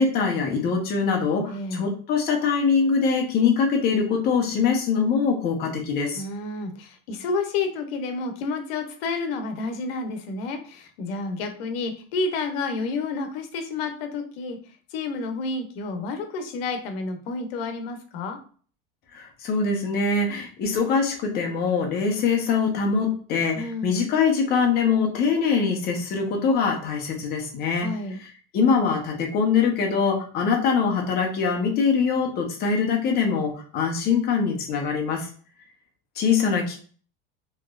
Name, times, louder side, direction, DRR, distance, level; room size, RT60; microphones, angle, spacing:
voice 1, 0.0-6.2 19.1-27.9 28.2-28.3 28.5-35.3 36.2-36.8, left 5 dB, 35° left, 1 dB, 0.9 m, -23 dB
voice 2, 1.5-1.9 6.1-14.6 14.9-18.4 23.5-24.0 27.8-28.2, left 3 dB, 85° left, 6 dB, 0.9 m, -30 dB
4.2 x 3.2 x 2.4 m, 0.42 s
cardioid pair, 165°, 29 cm